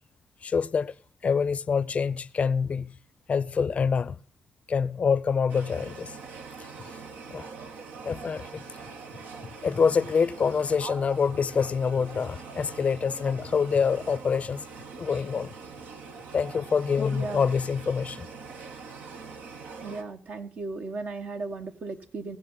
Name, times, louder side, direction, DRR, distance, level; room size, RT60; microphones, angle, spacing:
voice 1, 0.4-0.9 1.2-2.9 3.3-4.2 4.7-6.2 6.6-7.0 7.3-7.5 8.0-8.6 9.6-14.6 15.0-15.5 16.3-18.3, left 6 dB, 50° left, 0.5 m, -26 dB
sound 1, 5.5-20.0, right 5 dB, 80° right, 1.1 m, -43 dB
voice 2, 17.1-17.5 19.8-22.4, right 3 dB, 65° right, 1.3 m, -36 dB
17.5 x 6.7 x 5.5 m
supercardioid pair, 55°, 3 cm